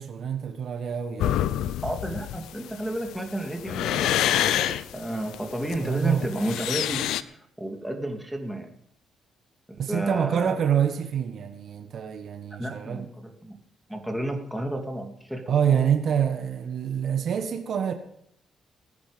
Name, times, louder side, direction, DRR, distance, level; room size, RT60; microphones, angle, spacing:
voice 1, 0.0-1.7 5.8-6.3 9.8-13.1 15.5-17.9, right 8 dB, 60° right, 1.3 m, -26 dB
sound 1, 1.2-7.2, left 12 dB, 85° left, 0.6 m, -27 dB
voice 2, 1.8-8.7 9.7-10.5 12.6-13.6 13.9-15.9, right 1 dB, 5° right, 2.6 m, -32 dB
20.0 x 9.0 x 5.2 m
cardioid pair, 90°, 0 cm